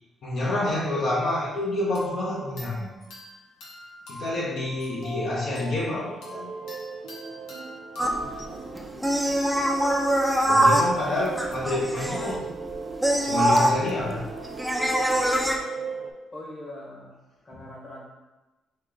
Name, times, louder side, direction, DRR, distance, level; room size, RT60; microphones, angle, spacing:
voice 1, 0.2-2.9 4.1-6.5 10.5-12.5 13.2-14.2, left 2 dB, 65° left, -6 dB, 1.0 m, -28 dB
sound 1, 1.9-8.4, left 2 dB, 90° left, 1.2 m, -42 dB
sound 2, 6.0-16.1, right 5 dB, 75° right, 0.6 m, -37 dB
sound 3, 8.0-15.6, right 1 dB, 5° right, 0.6 m, -24 dB
voice 2, 16.3-17.2 17.4-18.1, left 1 dB, 35° left, -3 dB, 1.3 m, -41 dB
5.1 x 2.4 x 3.7 m, 1.1 s
cardioid pair, 90°, 0 cm